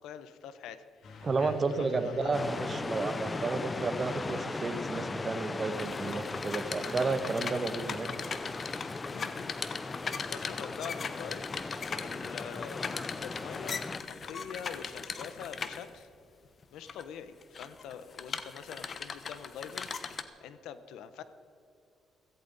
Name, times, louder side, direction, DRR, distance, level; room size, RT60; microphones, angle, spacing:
voice 1, 0.0-2.4 9.1-9.6 10.3-11.5 12.0-16.1 16.7-21.2, left 8 dB, 85° left, 12 dB, 0.9 m, -45 dB
Truck / Accelerating revving vroom, 1.0-9.0, left 2 dB, 65° left, 2.5 m, -50 dB
voice 2, 1.2-8.1, right 4 dB, 35° right, 9 dB, 1.2 m, -32 dB
sound 1, 2.3-14.0, left 3 dB, 25° left, 0.5 m, -38 dB
sound 2, 5.7-16.0 16.6-17.0 17.4-20.2, left 5 dB, 45° left, 1.0 m, -39 dB
16.0 x 15.5 x 4.1 m, 2.6 s
cardioid pair, 90°, 0 cm